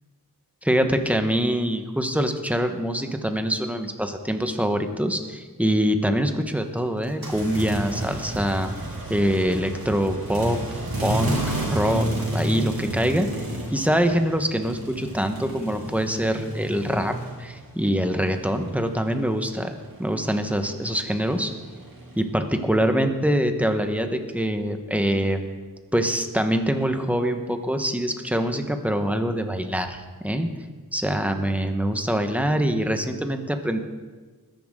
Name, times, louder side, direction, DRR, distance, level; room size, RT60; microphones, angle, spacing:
voice 1, 0.6-8.7 9.1-21.5 22.2-25.4 25.9-30.5 30.9-33.8, equal, 5° right, 6 dB, 1.2 m, -24 dB
sound 1, 7.0-17.8 18.1-22.2, right 1 dB, 85° right, 2.8 m, -31 dB
21.0 x 10.5 x 3.8 m, 1.4 s
wide cardioid pair, 80°, 35 cm